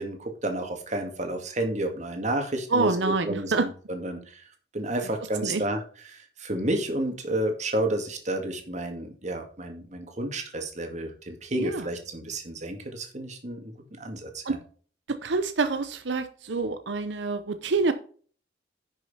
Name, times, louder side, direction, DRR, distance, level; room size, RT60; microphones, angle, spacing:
voice 1, 0.0-4.5 4.7-5.8 6.1-13.6 14.0-14.6, right 1 dB, 40° right, 4 dB, 2.2 m, -31 dB
voice 2, 2.7-3.7 5.4-5.6 11.5-11.9 14.4-14.6 15.1-17.9, right 3 dB, 85° right, 10 dB, 0.7 m, -27 dB
10.5 x 6.3 x 4.2 m, 0.43 s
head